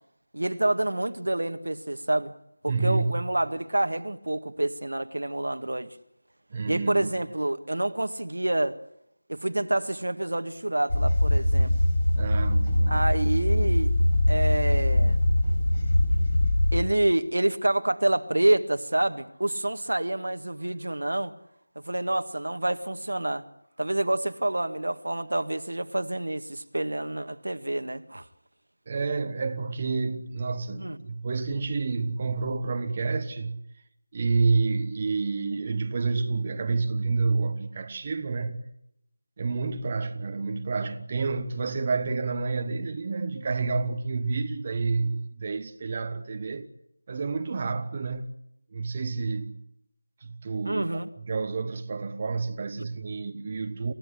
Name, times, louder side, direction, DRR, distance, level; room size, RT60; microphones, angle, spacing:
voice 1, 0.3-2.3 2.8-6.0 6.7-8.8 9.3-11.8 12.9-13.9 14.3-15.2 16.7-21.3 21.9-23.4 23.8-28.2 30.8-31.0 50.7-51.1 52.8-52.9, right 1 dB, 65° right, 1.8 m, -27 dB
voice 2, 2.7-3.2 6.5-7.1 12.1-13.0 28.9-33.6 34.1-38.6 39.4-46.7 47.1-48.3 48.7-49.6 50.2-53.9, right 4 dB, 25° right, 1.4 m, -29 dB
sound 1, 10.9-16.8, left 1 dB, 40° left, 5.7 m, -22 dB
28.5 x 16.0 x 10.0 m
figure-of-eight pair, 170°, 0 cm